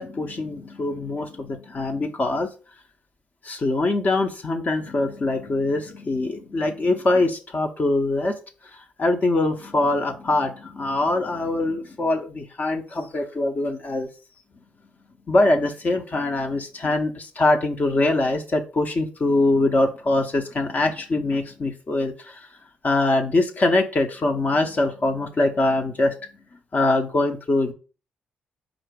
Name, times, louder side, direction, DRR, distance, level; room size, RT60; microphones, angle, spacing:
voice 1, 0.0-2.5 3.4-8.4 9.0-14.1 15.3-22.5 22.8-26.1 26.7-27.7, left 2 dB, 45° left, 4 dB, 0.7 m, -23 dB
4.4 x 2.6 x 4.5 m, 0.35 s
hypercardioid pair, 45°, 4 cm